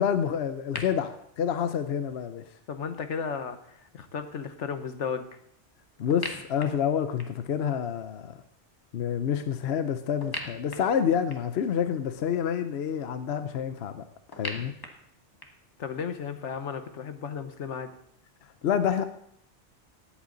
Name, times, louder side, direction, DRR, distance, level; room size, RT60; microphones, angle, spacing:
voice 1, 0.0-2.5 6.0-8.4 8.9-14.0 14.4-14.8 18.6-19.0, left 8 dB, 65° left, 10 dB, 0.9 m, -28 dB
sound 1, 0.7-0.8 6.1-7.5 10.2-11.6 14.3-15.7, left 1 dB, 20° left, 1.2 m, -39 dB
voice 2, 2.7-5.3 15.8-17.9, left 6 dB, 80° left, 8 dB, 1.3 m, -34 dB
18.5 x 8.3 x 3.9 m, 0.69 s
omnidirectional pair, 1.2 m